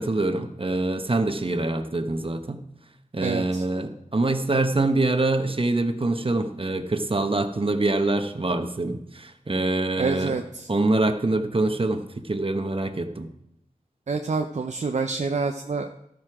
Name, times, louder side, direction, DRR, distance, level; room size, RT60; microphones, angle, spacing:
voice 1, 0.0-2.6 3.1-10.4 10.7-13.3, right 2 dB, 40° right, 7 dB, 1.1 m, -25 dB
voice 2, 3.2-3.6 10.0-10.7 14.1-16.0, right 4 dB, 55° right, 6 dB, 0.6 m, -27 dB
13.0 x 7.7 x 4.9 m, 0.83 s
cardioid pair, 45°, 14 cm